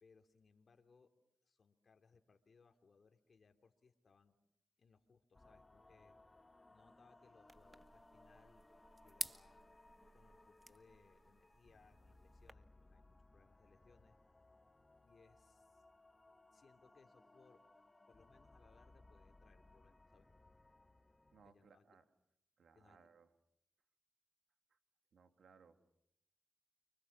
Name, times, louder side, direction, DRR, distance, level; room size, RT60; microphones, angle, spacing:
voice 1, 0.0-1.1 1.4-4.4 4.8-6.2 6.7-8.7 8.9-9.8 10.1-14.2 15.0-15.8 16.5-17.6 18.1-20.3 21.4-22.0 22.7-23.1, left 4 dB, 55° left, 5 dB, 2.9 m, -70 dB
sound 1, 5.3-21.5, left 2 dB, 25° left, 1.6 m, -65 dB
sound 2, 7.5-12.5, right 1 dB, 20° right, 1.7 m, -51 dB
voice 2, 21.3-22.0 22.6-23.3 24.7-24.8 25.1-26.0, right 5 dB, 75° right, 7 dB, 2.9 m, -66 dB
29.5 x 25.5 x 7.2 m, 0.78 s
supercardioid pair, 45°, 0 cm